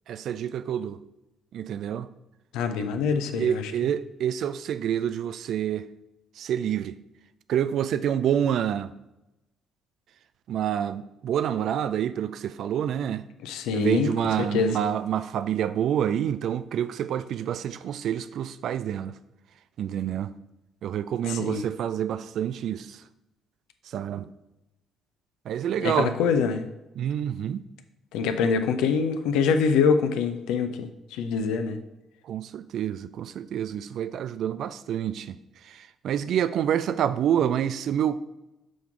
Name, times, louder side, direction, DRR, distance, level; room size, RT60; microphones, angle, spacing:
voice 1, 0.1-1.0 1.5-2.1 2.7-2.9 3.4-5.9 6.4-7.0 7.5-8.9 10.5-13.2 13.7-19.2 19.8-20.3 20.8-23.0 23.9-24.3 25.5-26.1 27.0-27.6 32.3-35.3 35.7-38.2, right 9 dB, 60° right, 0.4 m, -27 dB
voice 2, 2.5-3.7 13.4-14.1 14.4-14.7 21.2-21.6 25.8-26.7 28.1-31.8, left 5 dB, 65° left, 0.6 m, -25 dB
6.2 x 3.5 x 5.8 m
figure-of-eight pair, 45°, 0 cm